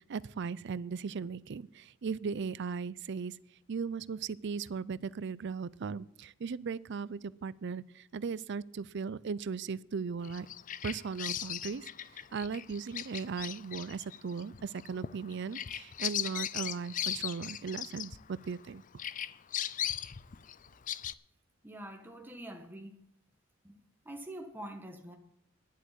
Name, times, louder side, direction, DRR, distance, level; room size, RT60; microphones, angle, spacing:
voice 1, 0.0-3.3 3.7-10.5 10.8-11.9 12.3-18.8, right 5 dB, 60° right, 20 dB, 0.4 m, -37 dB
Bird vocalization bird call bird song, 10.2-18.7 19.0-21.1, left 10 dB, 40° left, 0.5 m, -38 dB
voice 2, 21.6-22.9 23.6-23.7 24.1-25.2, right 1 dB, 10° right, 4 dB, 1.2 m, -45 dB
10.5 x 8.2 x 8.8 m, 0.71 s
head